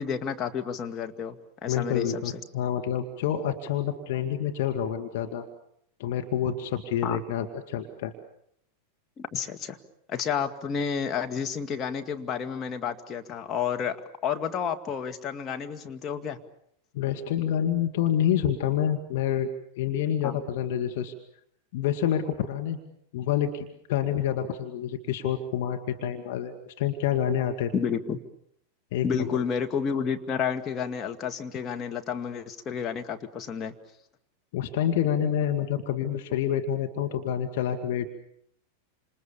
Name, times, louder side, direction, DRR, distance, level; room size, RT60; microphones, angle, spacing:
voice 1, 0.0-2.2 7.0-7.2 9.2-9.8 10.1-14.0 14.2-16.4 20.2-20.4 27.7-28.2 29.0-33.7, left 7 dB, 25° left, 5 dB, 2.4 m, -30 dB
voice 2, 1.7-5.5 6.0-8.1 16.9-19.5 19.8-21.1 21.7-22.8 23.1-27.7 28.9-29.4 34.5-38.1, left 9 dB, 50° left, 4 dB, 2.3 m, -28 dB
29.0 x 27.5 x 7.2 m, 0.72 s
figure-of-eight pair, 90°, 0 cm